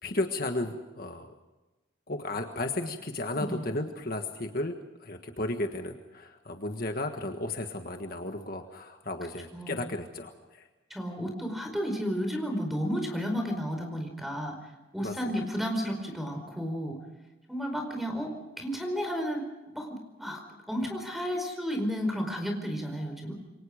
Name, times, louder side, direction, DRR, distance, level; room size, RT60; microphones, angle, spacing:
voice 1, 0.0-1.3 2.1-4.8 5.0-10.7 15.0-15.1, left 2 dB, 50° left, 5 dB, 1.5 m, -34 dB
voice 2, 9.5-9.8 10.9-14.6 14.9-17.0 17.5-20.4 20.7-23.3, equal, ahead, 3 dB, 4.8 m, -32 dB
28.5 x 23.5 x 5.1 m, 1.1 s
head